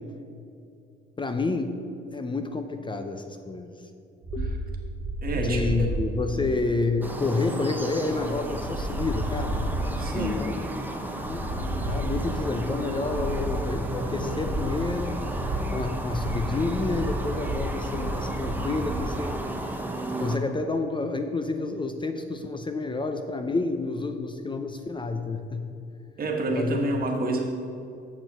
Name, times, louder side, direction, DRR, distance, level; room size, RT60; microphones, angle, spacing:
voice 1, 1.2-1.7 2.1-3.8 4.3-4.6 5.3-9.6 10.1-10.6 11.2-15.2 15.7-19.4 20.2-25.7 26.5-27.0, left 3 dB, 25° left, 7 dB, 0.6 m, -29 dB
sound 1, 4.2-19.1, right 1 dB, 80° right, 2.0 m, -32 dB
voice 2, 5.2-5.9 6.3-6.5 10.0-10.4 26.2-27.4, right 2 dB, 50° right, 1 dB, 1.5 m, -28 dB
sound 2, 7.0-20.4, right 1 dB, 10° right, 1.0 m, -33 dB
7.4 x 6.3 x 6.6 m, 2.5 s
cardioid pair, 90°, 20 cm